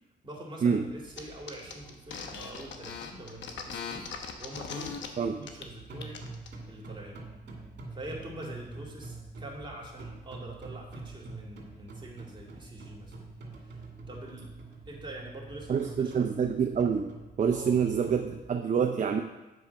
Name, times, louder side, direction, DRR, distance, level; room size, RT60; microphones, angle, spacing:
voice 1, 0.2-6.2 6.7-7.2 7.9-13.1 13.6-14.6 14.9-16.3 17.5-17.8, right 1 dB, 25° right, -2 dB, 2.3 m, -45 dB
sound 1, 0.9-18.6, right 3 dB, 65° right, 2.3 m, -46 dB
sound 2, 1.2-1.3 1.5-5.1 5.4-5.7 6.0-6.5, left 6 dB, 80° left, 0.9 m, -39 dB
voice 2, 15.7-19.2, right 6 dB, 40° right, 5 dB, 0.5 m, -27 dB
8.0 x 4.8 x 5.8 m, 1.1 s
cardioid pair, 95°, 19 cm